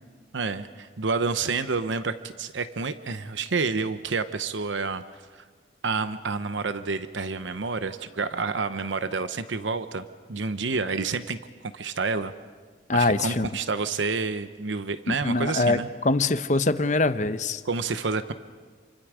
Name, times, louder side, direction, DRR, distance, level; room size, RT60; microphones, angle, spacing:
voice 1, 0.3-5.0 5.3-5.4 5.8-12.3 12.9-15.9 17.6-18.3, right 4 dB, 85° right, 11 dB, 0.8 m, -29 dB
voice 2, 12.9-13.5 15.1-17.6, left 2 dB, 40° left, 11 dB, 0.8 m, -23 dB
28.5 x 25.0 x 5.0 m, 1.5 s
head